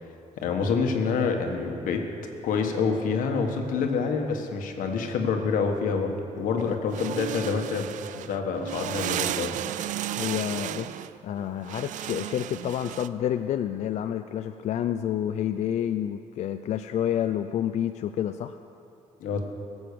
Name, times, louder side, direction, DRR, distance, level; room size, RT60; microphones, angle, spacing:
voice 1, 0.4-2.0 2.4-7.9 8.3-9.5 19.2-19.4, left 5 dB, 90° left, 4 dB, 1.5 m, -27 dB
sound 1, 6.6-13.1, right 12 dB, 70° right, 0.4 m, -34 dB
voice 2, 10.2-10.9 11.2-18.6, left 10 dB, 60° left, 8 dB, 0.4 m, -29 dB
17.5 x 8.0 x 6.9 m, 2.6 s
cardioid pair, 150°, 13 cm